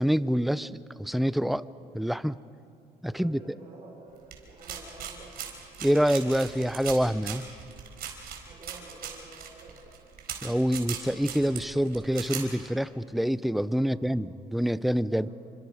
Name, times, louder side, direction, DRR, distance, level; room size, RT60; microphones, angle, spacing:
voice 1, 0.0-1.6 1.9-2.4 3.0-3.4 5.8-7.4 10.4-15.3, equal, ahead, 16 dB, 0.5 m, -26 dB
voice 2, 3.1-5.3 8.4-9.9 13.7-14.4 14.9-15.3, right 3 dB, 35° right, -5 dB, 5.2 m, -50 dB
sound 1, 4.3-12.4, right 8 dB, 65° right, 4.2 m, -39 dB
28.5 x 25.5 x 4.9 m, 2.5 s
cardioid pair, 110°, 17 cm